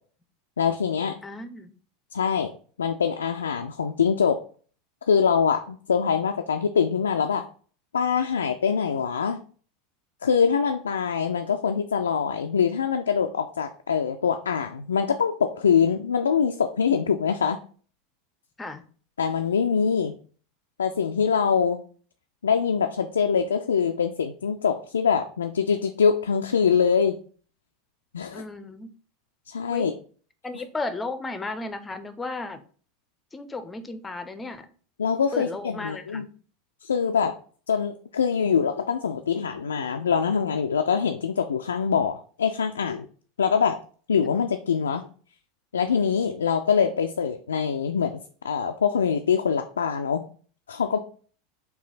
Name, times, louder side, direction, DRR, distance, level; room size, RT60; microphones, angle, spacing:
voice 1, 0.6-1.2 2.1-2.5 2.8-4.4 5.1-7.4 7.9-9.4 10.2-17.6 19.2-20.1 20.8-21.8 22.4-27.2 28.1-28.4 29.5-29.9 35.0-36.3 36.8-37.3 37.7-43.1 43.4-43.8 44.1-45.0 45.7-48.2 48.4-50.2 50.7-51.0, left 6 dB, 75° left, 5 dB, 0.3 m, -24 dB
voice 2, 1.2-1.7 18.6-18.9 28.3-28.9 29.7-29.9 30.4-32.6 33.3-34.7 35.3-36.3, left 3 dB, 15° left, 10 dB, 0.6 m, -34 dB
4.6 x 2.8 x 4.0 m, 0.43 s
figure-of-eight pair, 80°, 0 cm